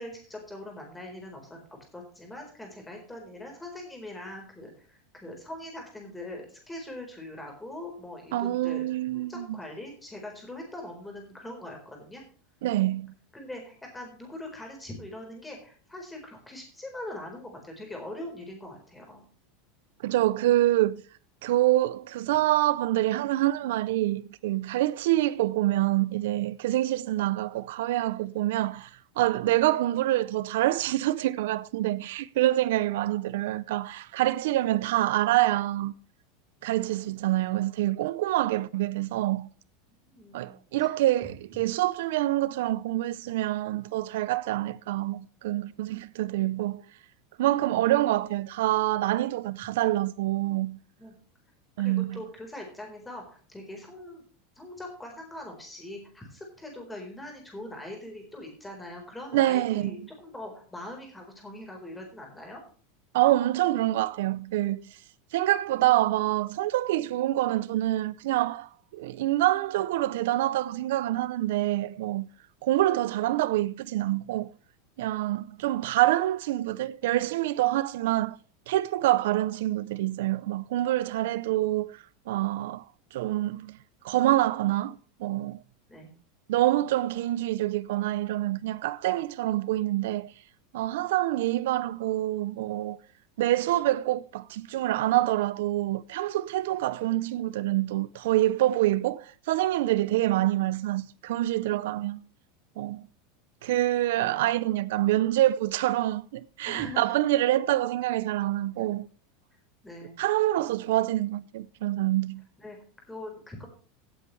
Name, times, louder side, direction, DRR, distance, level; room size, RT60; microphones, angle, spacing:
voice 1, 0.0-8.9 9.1-12.2 13.3-19.2 40.1-40.9 51.0-51.1 51.8-54.2 54.6-62.6 85.9-86.1 104.1-104.3 106.6-107.2 109.8-110.1 112.6-112.8 113.1-113.7, left 1 dB, 5° left, 4.2 m, -42 dB
voice 2, 8.3-9.6 12.6-13.1 20.0-21.0 21.4-35.9 36.6-39.5 40.3-46.8 47.4-50.8 51.8-52.2 59.3-59.9 63.1-65.0 65.3-72.3 72.6-74.5 75.0-78.4 78.7-82.8 83.1-83.8 84.0-85.6 86.5-90.3 90.7-93.0 93.4-102.2 102.8-103.0 103.6-109.1 110.2-112.4, right 15 dB, 75° right, 0.5 m, -26 dB
17.0 x 8.4 x 3.2 m
supercardioid pair, 165°, 0 cm